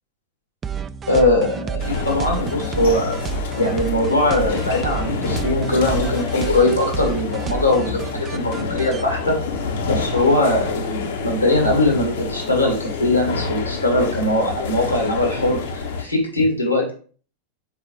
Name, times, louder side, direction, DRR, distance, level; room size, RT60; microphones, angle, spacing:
sound 1, 0.6-9.0, right 8 dB, 20° right, 0.4 m, -30 dB
voice 1, 1.1-3.2 3.5-9.4 9.8-16.9, left 2 dB, 85° left, 1 dB, 2.2 m, -20 dB
sound 2, 1.8-16.0, left 4 dB, 60° left, 1.0 m, -27 dB
5.3 x 4.7 x 4.3 m, 0.42 s
figure-of-eight pair, 90°, 0 cm